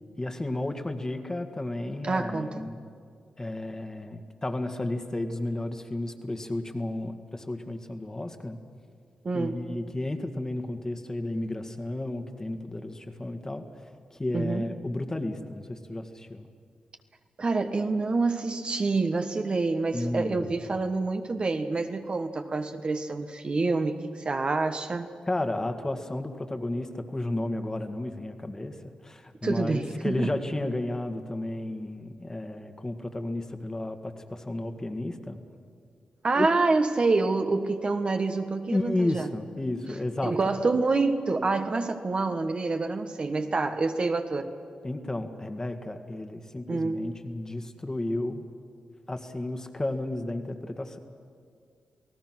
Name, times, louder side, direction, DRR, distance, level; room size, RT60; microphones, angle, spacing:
voice 1, 0.2-2.8 3.4-8.6 9.3-16.5 19.9-20.5 25.3-28.8 29.0-35.4 36.3-36.5 38.7-40.3 44.8-48.4 49.1-51.0, left 1 dB, 25° left, 6 dB, 1.8 m, -32 dB
voice 2, 2.0-2.6 9.2-9.6 14.3-14.7 17.4-25.1 29.4-30.3 36.2-39.3 40.2-44.5 46.7-47.1, right 3 dB, 45° right, 6 dB, 1.4 m, -27 dB
28.0 x 17.5 x 6.2 m, 2.2 s
cardioid pair, 60°, 2 cm